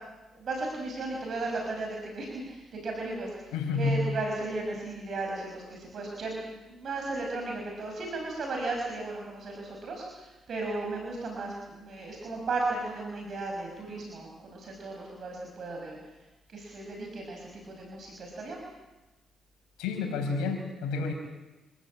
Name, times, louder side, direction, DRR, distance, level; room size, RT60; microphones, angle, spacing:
voice 1, 0.3-16.0 16.5-18.6, right 2 dB, 60° right, 0 dB, 6.1 m, -35 dB
voice 2, 3.5-4.1 19.8-21.1, left 4 dB, 90° left, 3 dB, 5.9 m, -29 dB
27.5 x 16.0 x 8.7 m, 1.1 s
supercardioid pair, 60°, 0 cm